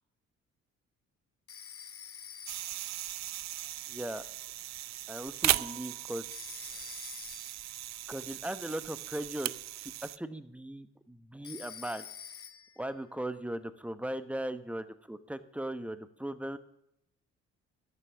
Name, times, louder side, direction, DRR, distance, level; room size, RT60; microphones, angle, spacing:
Telephone, 1.5-2.9 6.3-7.7 11.4-12.9, left 8 dB, 50° left, 1.0 m, -47 dB
sound 1, 2.5-10.2, right 14 dB, 65° right, 0.5 m, -37 dB
voice 1, 3.9-4.2 5.1-6.3 8.1-9.5 9.8-12.0 12.8-16.6, right 1 dB, 5° right, 12 dB, 1.1 m, -38 dB
13.5 x 9.6 x 7.0 m, 0.81 s
cardioid pair, 90°, 30 cm